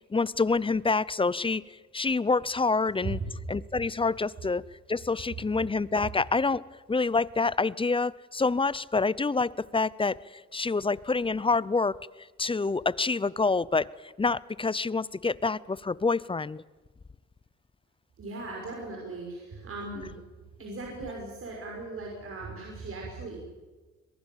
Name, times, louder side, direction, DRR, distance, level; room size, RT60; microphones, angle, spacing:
voice 1, 0.1-1.6 1.9-3.2 3.5-4.6 4.9-6.6 6.9-11.9 12.4-16.6, left 4 dB, 15° left, 21 dB, 0.6 m, -27 dB
voice 2, 18.2-20.1 20.6-23.4, right 3 dB, 45° right, -1 dB, 6.1 m, -38 dB
22.0 x 22.0 x 7.4 m, 1.3 s
cardioid pair, 90°, 30 cm